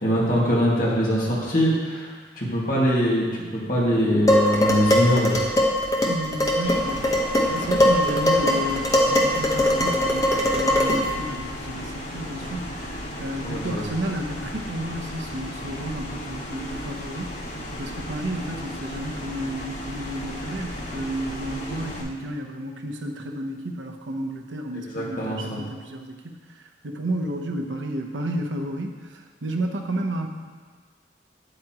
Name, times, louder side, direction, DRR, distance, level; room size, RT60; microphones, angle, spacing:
voice 1, 0.0-5.4 13.4-13.8 24.7-25.6, equal, 50° left, -5 dB, 2.0 m, -23 dB
Dishes pots and pans, 4.3-11.1, left 1 dB, 20° left, 0.9 m, -21 dB
voice 2, 6.0-17.4 17.7-30.3, right 1 dB, 90° right, 3 dB, 0.8 m, -32 dB
sound 1, 6.6-22.0, left 1 dB, 85° left, 2.8 m, -35 dB
9.5 x 8.3 x 3.0 m, 1.5 s
head